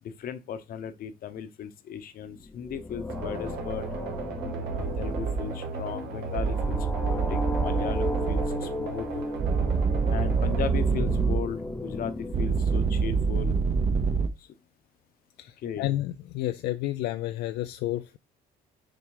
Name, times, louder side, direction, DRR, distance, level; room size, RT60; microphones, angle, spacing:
voice 1, 0.0-3.9 4.7-6.8 7.1-9.2 10.1-13.6 14.4-14.5 15.6-15.8, left 8 dB, 60° left, 0.9 m, -36 dB
sound 1, 2.4-13.5, left 2 dB, 10° left, 0.6 m, -36 dB
sound 2, 3.1-11.8, right 5 dB, 80° right, 1.3 m, -37 dB
sound 3, 4.7-5.4 6.4-8.5 9.4-11.4 12.3-14.3, right 5 dB, 40° right, 0.8 m, -26 dB
voice 2, 15.4-18.2, left 14 dB, 80° left, 0.4 m, -31 dB
6.1 x 3.3 x 4.9 m
cardioid pair, 110°, 17 cm